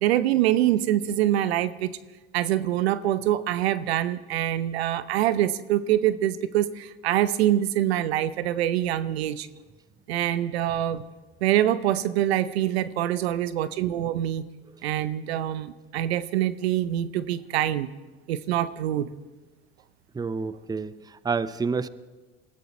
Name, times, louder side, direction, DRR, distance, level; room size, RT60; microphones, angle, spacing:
voice 1, 0.0-2.0 2.3-9.5 10.1-11.0 11.4-14.4 14.8-17.9 18.3-19.1, right 12 dB, 85° right, 15 dB, 0.8 m, -25 dB
voice 2, 20.1-21.9, right 5 dB, 15° right, 16 dB, 0.6 m, -29 dB
21.5 x 15.0 x 4.3 m, 1.2 s
hypercardioid pair, 80°, 31 cm